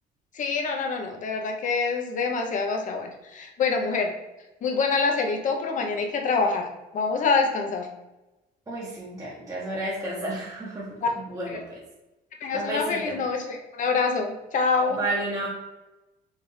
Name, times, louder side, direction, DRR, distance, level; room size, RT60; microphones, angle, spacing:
voice 1, 0.3-4.1 4.6-6.7 6.9-7.9 12.4-15.0, left 4 dB, 50° left, 3 dB, 0.9 m, -26 dB
voice 2, 8.7-11.8 12.5-13.3 14.9-15.5, right 2 dB, 20° right, -5 dB, 1.1 m, -32 dB
4.5 x 3.6 x 3.2 m, 1.0 s
cardioid pair, 110°, 17 cm